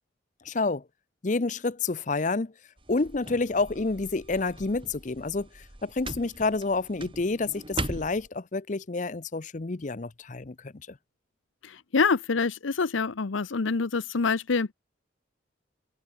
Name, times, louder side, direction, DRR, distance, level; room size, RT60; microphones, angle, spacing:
voice 1, 0.5-0.8 1.2-2.5 2.9-10.7, left 3 dB, 40° left, 0.6 m, -29 dB
sound 1, 2.8-8.3, right 2 dB, 25° right, 2.7 m, -39 dB
voice 2, 11.6-14.7, left 4 dB, 85° left, 0.8 m, -26 dB
open air
head